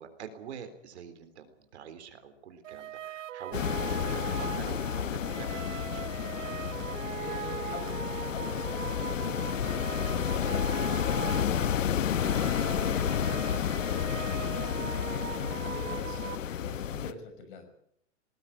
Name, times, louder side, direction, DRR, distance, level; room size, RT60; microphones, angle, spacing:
voice 1, 0.0-6.1 9.0-9.1 12.2-12.4, right 7 dB, 60° right, 9 dB, 3.7 m, -46 dB
sound 1, 2.6-16.3, right 12 dB, 90° right, 0.8 m, -40 dB
sound 2, 3.5-17.1, left 9 dB, 90° left, 1.5 m, -31 dB
sound 3, 4.6-4.8 5.5-6.0 6.7-7.1 7.8-8.1 8.8-9.0 9.9-10.0, right 7 dB, 25° right, 5.1 m, -54 dB
voice 2, 7.1-11.5 12.1-17.7, left 4 dB, 45° left, 9 dB, 6.0 m, -43 dB
20.0 x 19.5 x 8.7 m, 0.71 s
hypercardioid pair, 175°, 37 cm